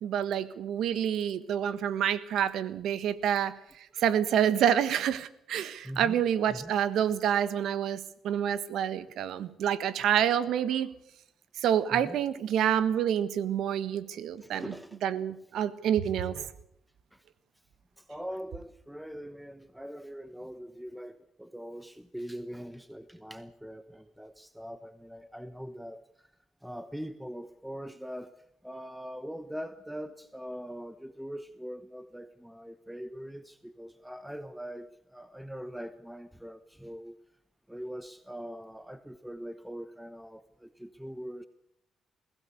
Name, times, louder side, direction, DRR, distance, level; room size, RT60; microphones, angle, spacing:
voice 1, 0.0-10.9 11.6-14.7 15.0-16.5, right 9 dB, 75° right, 14 dB, 1.4 m, -28 dB
voice 2, 5.8-6.2 6.5-6.7 11.9-12.2 14.4-15.0 18.0-26.0 26.6-28.3 28.6-37.2 37.7-41.5, equal, 5° right, 11 dB, 1.0 m, -42 dB
21.5 x 16.0 x 8.3 m, 0.78 s
cardioid pair, 90°, 0 cm